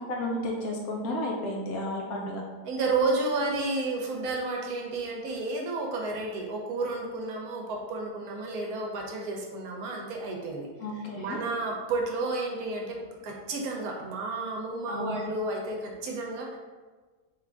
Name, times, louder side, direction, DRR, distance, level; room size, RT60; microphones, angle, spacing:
voice 1, 0.1-2.4 10.8-11.4 14.9-15.2, left 1 dB, 70° left, -1 dB, 1.0 m, -32 dB
voice 2, 2.6-10.7 11.2-13.0 13.2-16.6, right 3 dB, 70° right, 0 dB, 1.0 m, -31 dB
3.6 x 2.4 x 3.3 m, 1.3 s
omnidirectional pair, 1.7 m